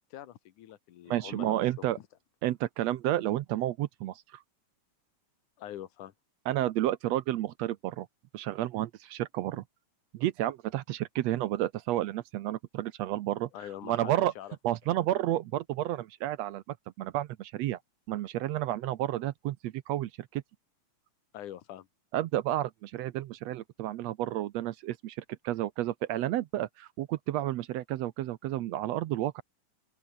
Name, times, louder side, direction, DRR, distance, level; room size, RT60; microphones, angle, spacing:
voice 1, 0.1-2.1 5.6-6.1 13.5-14.6 21.3-21.9, left 12 dB, 90° left, 2.9 m, -44 dB
voice 2, 1.1-2.0 2.4-4.2 6.5-8.1 8.3-9.6 10.1-13.5 13.8-14.3 14.6-17.8 18.1-20.4 22.1-25.2 25.4-29.4, right 14 dB, 75° right, 1.8 m, -31 dB
open air
omnidirectional pair, 3.4 m